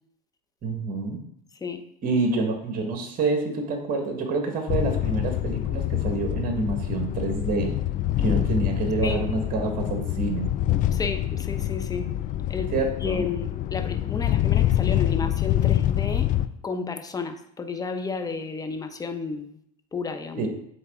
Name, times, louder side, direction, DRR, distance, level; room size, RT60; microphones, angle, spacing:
voice 1, 0.6-1.2 2.0-7.7 8.2-10.5 12.7-13.2 20.3-20.5, right 3 dB, 45° right, 3 dB, 1.6 m, -27 dB
sound 1, 4.7-16.5, left 12 dB, 40° left, 0.4 m, -26 dB
voice 2, 10.9-12.1 12.5-12.7 13.0-16.3 16.6-19.6 19.9-20.5, left 4 dB, 20° left, 7 dB, 0.8 m, -32 dB
8.5 x 3.9 x 3.7 m, 0.71 s
supercardioid pair, 100°, 21 cm